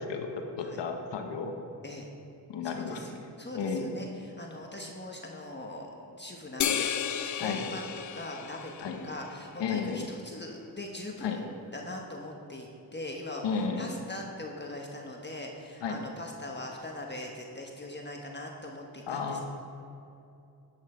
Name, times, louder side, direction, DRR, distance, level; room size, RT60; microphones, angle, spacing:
voice 1, 0.0-1.5 2.5-3.3 3.5-3.9 7.4-7.6 8.8-9.0 9.6-10.1 11.2-11.4 13.4-13.9 15.8-16.0 19.1-19.4, left 5 dB, 85° left, 4 dB, 1.1 m, -33 dB
voice 2, 2.6-7.9 8.1-11.5 11.7-19.4, left 1 dB, 25° left, 0 dB, 1.2 m, -41 dB
sound 1, 6.6-9.3, left 9 dB, 45° left, 0.5 m, -33 dB
11.0 x 6.5 x 5.0 m, 2.7 s
cardioid pair, 60°, 42 cm